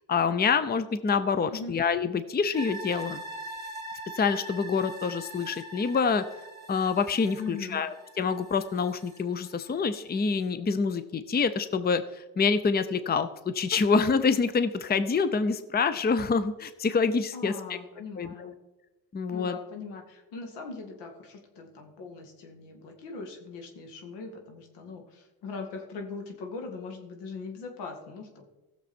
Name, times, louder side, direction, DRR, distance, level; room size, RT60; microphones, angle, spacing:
voice 1, 0.1-3.2 4.1-6.2 6.7-17.5 18.2-18.5 19.1-19.6, left 5 dB, 25° left, 12 dB, 0.7 m, -26 dB
sound 1, 2.5-9.8 10.2-10.3, right 1 dB, 10° left, 2.5 m, -43 dB
voice 2, 7.4-7.8 17.3-18.5 19.3-28.5, left 4 dB, 85° left, 4 dB, 2.2 m, -40 dB
15.5 x 7.0 x 4.4 m, 1.1 s
supercardioid pair, 75°, 40 cm